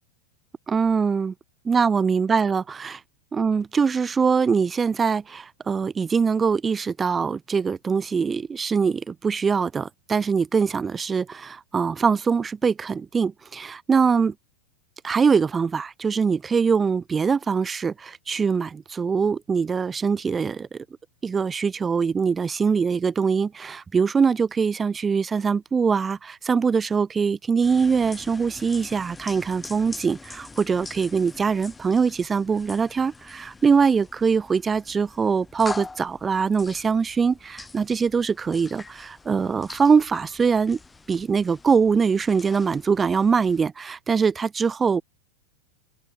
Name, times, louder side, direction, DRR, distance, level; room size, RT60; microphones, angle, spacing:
voice 1, 0.7-1.3 1.7-3.0 3.3-14.3 15.0-20.8 21.2-40.8 41.1-45.0, right 5 dB, 15° right, 0.9 m, -23 dB
sound 1, 27.6-43.7, left 3 dB, 10° left, 5.1 m, -43 dB
open air
figure-of-eight pair, 90°, 0 cm